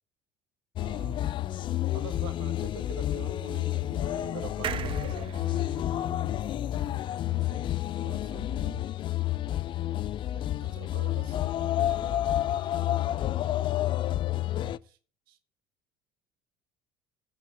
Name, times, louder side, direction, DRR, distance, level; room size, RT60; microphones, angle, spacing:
sound 1, 0.8-14.8, left 13 dB, 45° left, 0.4 m, -30 dB
voice 1, 0.8-1.3 1.9-5.3 7.3-7.7 8.0-8.9 10.3-12.4 14.4-15.0 15.3-15.4, right 11 dB, 80° right, 1.6 m, -46 dB
sound 2, 4.6-8.1 8.5-8.6 8.8-8.9, right 10 dB, 50° right, 1.2 m, -39 dB
voice 2, 5.9-6.5 7.9-8.7 9.6-10.0 12.5-13.8, right 8 dB, 65° right, 2.6 m, -54 dB
10.5 x 5.5 x 8.5 m
hypercardioid pair, 70°, 12 cm